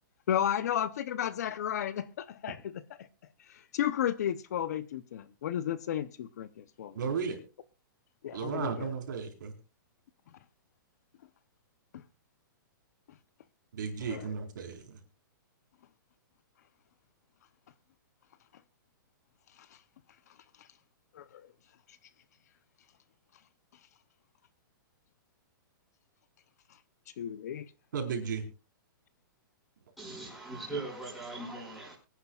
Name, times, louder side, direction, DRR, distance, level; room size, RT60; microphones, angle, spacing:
voice 1, 0.3-3.1 3.4-7.0 8.2-8.9 11.9-12.0 14.0-14.3 19.6-19.7 20.6-20.7 21.1-21.5 21.9-22.0 27.2-27.7, left 10 dB, 50° left, 0.8 m, -33 dB
voice 2, 6.9-7.4 8.3-9.5 13.7-15.0 27.9-28.4, right 6 dB, 60° right, 4.5 m, -34 dB
voice 3, 30.0-31.9, right 2 dB, ahead, 5.8 m, -40 dB
24.5 x 10.5 x 2.4 m
hypercardioid pair, 170°, 11 cm